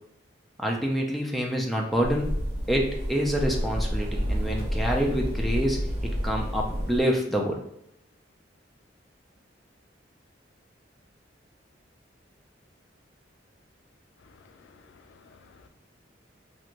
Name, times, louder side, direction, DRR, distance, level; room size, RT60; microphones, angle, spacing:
voice 1, 0.6-2.4 2.7-7.6, equal, ahead, -1 dB, 0.4 m, -27 dB
sound 1, 2.0-7.0, equal, 40° right, 0.7 m, -29 dB
voice 2, 14.2-15.7, left 5 dB, 70° left, 6 dB, 0.3 m, -55 dB
2.6 x 2.5 x 3.0 m, 0.78 s
head